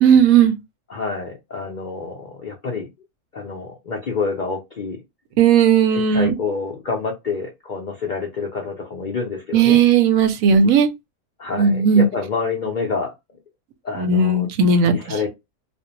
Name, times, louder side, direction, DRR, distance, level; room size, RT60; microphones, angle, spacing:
voice 1, 0.0-0.5 5.4-6.4 9.5-10.9 11.5-12.1 14.0-14.9, right 6 dB, 70° right, 0.9 m, -15 dB
voice 2, 0.9-2.9 3.3-5.0 5.9-9.8 11.4-13.1 13.8-14.5 14.8-15.3, left 4 dB, 75° left, 0.4 m, -27 dB
2.5 x 2.0 x 2.7 m
omnidirectional pair, 1.6 m